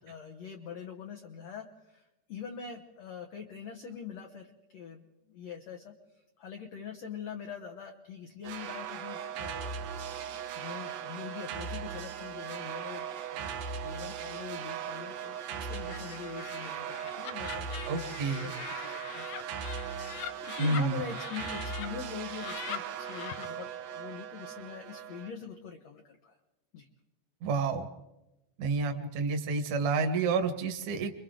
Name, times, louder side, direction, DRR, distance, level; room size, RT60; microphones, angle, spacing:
voice 1, 0.0-5.9 6.4-9.9 10.6-19.4 20.4-23.7 23.9-26.4 26.7-26.9, left 7 dB, 70° left, 2 dB, 1.6 m, -43 dB
sound 1, 8.4-25.3, right 7 dB, 85° right, 1.5 m, -39 dB
Laughter, 15.7-21.9 22.2-23.5, left 10 dB, 90° left, 1.6 m, -43 dB
voice 2, 17.9-18.5 20.6-21.0 27.4-27.9 28.6-31.1, right 4 dB, 60° right, 5 dB, 2.3 m, -29 dB
29.0 x 23.0 x 3.8 m, 0.98 s
omnidirectional pair, 4.6 m